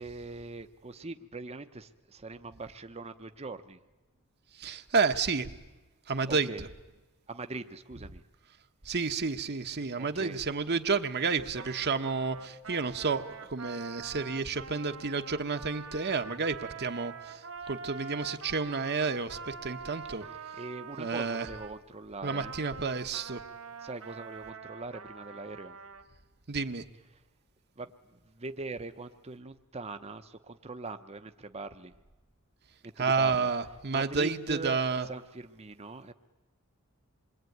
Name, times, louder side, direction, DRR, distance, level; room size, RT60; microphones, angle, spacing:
voice 1, 0.0-3.8 6.3-6.6 7.3-8.2 10.0-10.4 20.1-22.5 23.8-25.8 27.8-31.9 32.8-33.5 33.9-36.1, right 3 dB, 30° right, 8 dB, 0.9 m, -42 dB
voice 2, 4.6-5.5 6.1-6.7 8.8-20.2 21.0-21.5 22.2-23.4 26.5-26.8 33.0-35.1, right 4 dB, 50° right, 7 dB, 1.1 m, -30 dB
Trumpet, 11.5-21.8 22.3-26.0, right 5 dB, 65° right, 2.0 m, -45 dB
27.0 x 22.0 x 9.3 m, 1.1 s
head